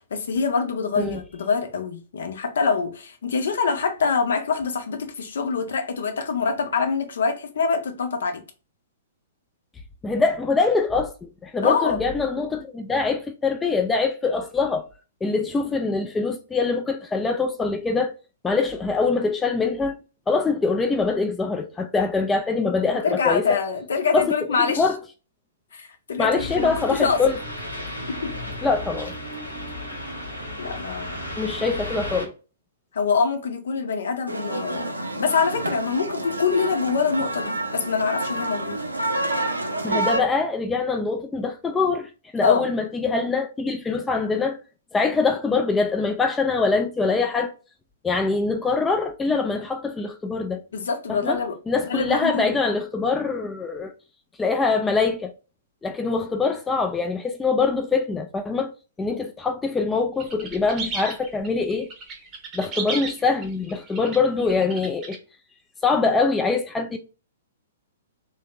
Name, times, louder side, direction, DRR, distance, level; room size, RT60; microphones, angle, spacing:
voice 1, 0.0-8.4 11.6-12.0 23.0-24.9 25.7-27.2 28.1-28.3 30.6-31.5 32.9-38.8 42.4-42.7 50.7-51.6 51.9-52.5, left 5 dB, 60° left, 0.7 m, -25 dB
voice 2, 10.0-14.9 15.2-18.1 18.4-19.9 20.3-23.6 24.1-24.3 24.8-25.0 26.2-27.4 28.6-29.1 31.4-32.3 39.8-44.6 44.9-47.5 48.0-50.6 51.1-51.4 51.7-53.9 54.4-55.3 55.8-58.7 59.0-61.9 62.5-65.2 65.8-67.0, left 4 dB, 10° left, 0.3 m, -23 dB
sound 1, 26.3-32.3, left 1 dB, 85° left, 1.1 m, -34 dB
sound 2, 34.3-40.2, right 2 dB, 80° right, 0.6 m, -28 dB
sound 3, 60.2-65.2, right 4 dB, 25° right, 0.8 m, -34 dB
3.3 x 2.7 x 2.7 m
figure-of-eight pair, 115°, 0 cm